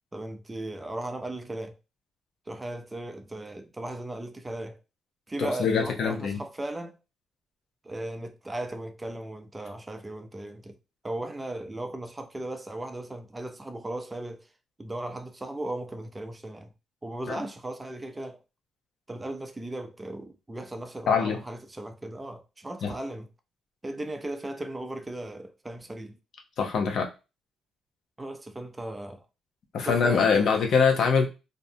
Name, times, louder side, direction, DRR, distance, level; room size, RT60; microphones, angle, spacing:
voice 1, 0.1-1.8 2.5-4.8 5.3-7.0 7.8-10.8 11.0-14.5 14.8-16.7 17.0-18.4 19.1-23.3 23.8-26.2 28.2-29.2 29.8-30.5, right 1 dB, 15° right, 0.5 m, -37 dB
voice 2, 5.4-6.4 17.3-17.4 21.1-21.4 22.8-22.9 26.6-27.1 29.7-31.3, left 5 dB, 65° left, 0.7 m, -23 dB
2.6 x 2.1 x 2.6 m
cardioid pair, 90°, 0 cm